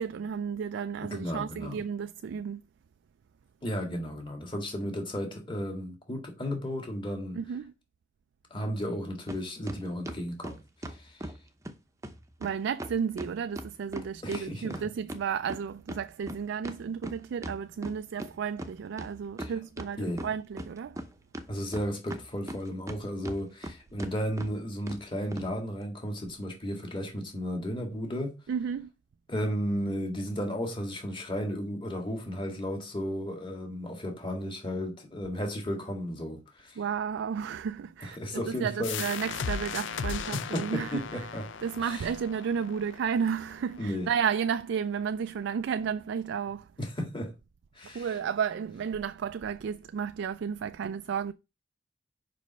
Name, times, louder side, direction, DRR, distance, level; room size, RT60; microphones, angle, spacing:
voice 1, 0.0-2.6 7.3-7.7 12.4-21.0 28.5-28.9 36.8-38.2 38.5-41.3 41.6-46.7 47.8-51.3, right 7 dB, 65° right, 0.3 m, -32 dB
voice 2, 1.1-1.8 3.6-7.4 8.5-11.3 14.2-14.8 19.4-19.5 20.0-20.3 21.5-28.3 29.3-36.8 38.0-39.0 40.3-41.4 41.8-42.1 43.8-44.1 46.8-47.3 47.8-48.1, equal, 25° left, 1.9 m, -34 dB
sound 1, 9.3-9.4 9.7-11.4 11.6-11.7 12.0-12.2 12.4-12.5 12.8-15.2 15.5-18.3 18.6-18.7 19.0-19.9 20.2-21.1 21.3-23.0 23.2-23.7 24.0-24.1 24.4-24.5 24.9-25.0 25.3-25.5, right 1 dB, 15° right, 0.7 m, -38 dB
sound 2, 38.8-44.2, left 6 dB, 70° left, 0.5 m, -37 dB
5.2 x 5.1 x 5.5 m
head